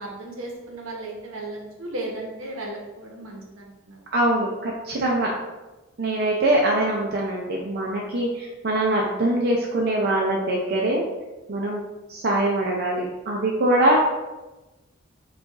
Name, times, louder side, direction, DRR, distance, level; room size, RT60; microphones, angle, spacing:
voice 1, 0.0-4.0, right 2 dB, 75° right, -1 dB, 1.0 m, -35 dB
voice 2, 4.1-5.3 6.0-11.0 11.5-11.8 12.1-14.0, right 1 dB, 50° right, -2 dB, 0.5 m, -23 dB
4.6 x 2.4 x 4.0 m, 1.1 s
head